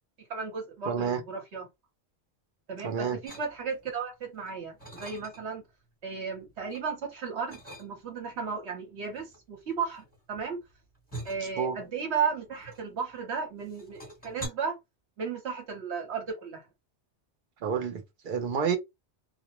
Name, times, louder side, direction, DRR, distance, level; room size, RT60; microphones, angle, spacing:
voice 1, 0.2-1.7 2.7-5.6 6.0-10.6 11.2-14.8 15.2-16.7, right 6 dB, 75° right, 1.2 m, -34 dB
voice 2, 0.9-1.2 2.8-3.2 11.6-11.8 17.6-18.8, right 6 dB, 55° right, 0.7 m, -29 dB
sound 1, 3.2-3.9 4.4-5.7 6.1-6.9 7.5-8.3 9.1-13.3 13.6-14.5, right 1 dB, 10° left, 1.2 m, -45 dB
2.3 x 2.1 x 2.8 m
omnidirectional pair, 1.2 m